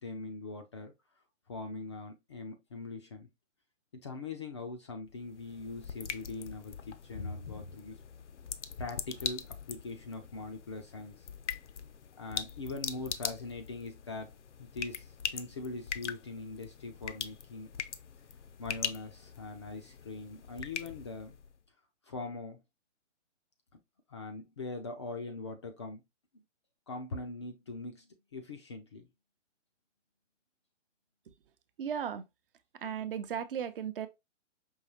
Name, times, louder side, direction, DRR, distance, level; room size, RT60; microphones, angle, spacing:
voice 1, 0.0-0.9 1.5-3.3 4.0-8.0 8.8-11.3 12.2-14.3 14.6-17.7 18.6-21.4 22.1-22.6 24.1-26.0 26.9-29.1, left 3 dB, 25° left, 0.4 m, -42 dB
sound 1, 5.1-21.6, left 7 dB, 70° left, 0.7 m, -42 dB
voice 2, 31.8-32.2 32.8-34.1, right 8 dB, 45° right, 0.7 m, -35 dB
5.5 x 2.8 x 2.9 m
hypercardioid pair, 140°, 37 cm